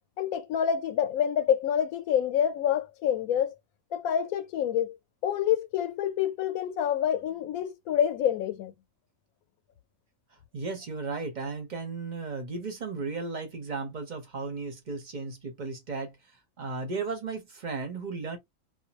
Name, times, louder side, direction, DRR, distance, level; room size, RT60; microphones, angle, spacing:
voice 1, 0.2-3.5 3.9-5.0 5.2-8.7, left 9 dB, 85° left, 1.0 m, -27 dB
voice 2, 10.5-16.2 16.6-18.4, right 4 dB, 40° right, 0.8 m, -35 dB
2.5 x 2.1 x 2.8 m
omnidirectional pair, 1.5 m